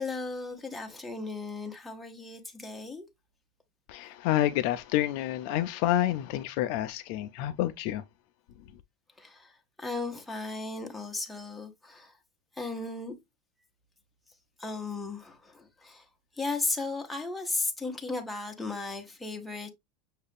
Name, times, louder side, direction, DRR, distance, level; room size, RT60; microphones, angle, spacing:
voice 1, 0.0-3.1 9.2-12.2 12.6-13.1 14.6-16.1 16.3-19.7, left 3 dB, 5° left, 0.7 m, -35 dB
voice 2, 3.9-8.0, left 13 dB, 50° left, 0.3 m, -28 dB
6.5 x 2.4 x 3.4 m
supercardioid pair, 170°, 0 cm